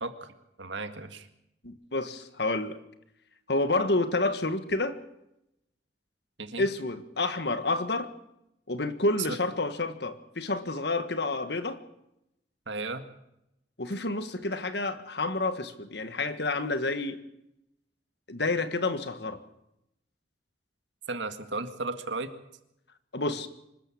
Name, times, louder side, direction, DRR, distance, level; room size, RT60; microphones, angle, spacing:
voice 1, 0.0-0.3 0.6-1.3 6.4-6.6 9.3-9.4 12.7-13.0 21.1-22.3, right 3 dB, 80° right, 8 dB, 2.0 m, -34 dB
voice 2, 1.6-2.8 3.5-5.0 6.6-8.1 8.7-11.8 13.8-17.2 18.3-19.4 23.1-23.5, left 2 dB, 60° left, 10 dB, 1.6 m, -29 dB
25.5 x 13.5 x 8.6 m, 0.84 s
head